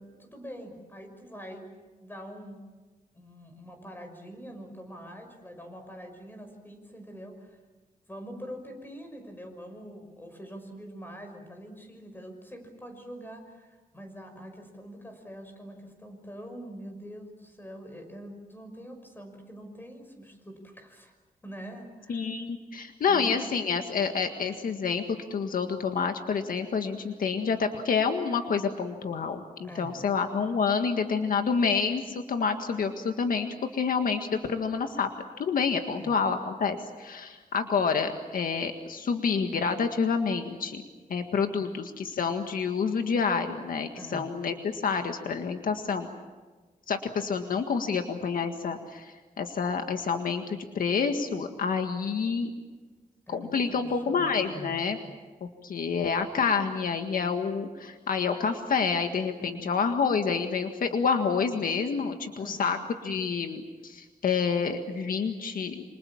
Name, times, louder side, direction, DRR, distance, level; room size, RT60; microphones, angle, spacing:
voice 1, 0.0-2.6 3.1-7.6 8.1-21.1 21.4-22.3 23.1-23.4 29.6-30.1 35.9-36.1 41.5-41.7 43.9-44.3 53.3-55.2 59.4-59.7 61.5-61.6 62.4-62.7, equal, 15° left, 5 dB, 6.0 m, -44 dB
voice 2, 22.1-35.1 35.4-40.8 41.1-46.1 46.9-52.5 53.3-55.0 55.4-62.8 63.0-65.8, left 5 dB, 70° left, 6 dB, 1.8 m, -28 dB
28.0 x 26.5 x 7.3 m, 1.3 s
wide cardioid pair, 125°, 15 cm